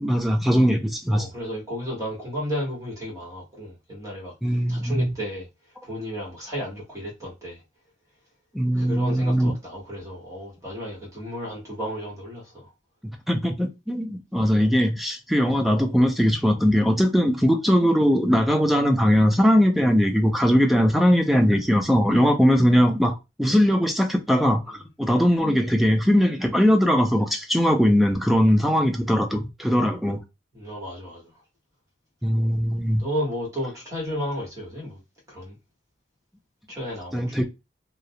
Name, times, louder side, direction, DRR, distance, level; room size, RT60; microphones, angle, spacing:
voice 1, 0.0-1.3 4.4-5.1 8.5-9.5 13.3-30.2 32.2-33.0 37.1-37.4, equal, ahead, 0.3 m, -20 dB
voice 2, 1.1-5.5 5.8-7.6 8.8-12.4 30.5-31.3 33.0-35.0 35.3-35.5 36.7-37.4, equal, 20° right, 1.1 m, -33 dB
2.4 x 2.0 x 2.7 m
head